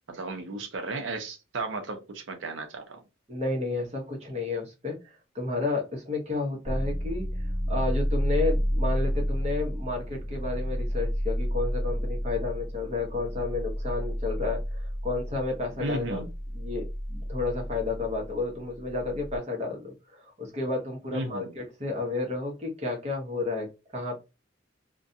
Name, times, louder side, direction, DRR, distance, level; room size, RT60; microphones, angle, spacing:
voice 1, 0.1-3.0 15.8-16.3 21.1-21.5, right 2 dB, 70° right, 0.6 m, -34 dB
voice 2, 3.3-7.3 7.7-16.2 16.5-23.7 23.9-24.2, left 3 dB, 35° right, 0.9 m, -31 dB
sound 1, 6.6-19.4, equal, ahead, 1.1 m, -31 dB
2.4 x 2.2 x 2.6 m
head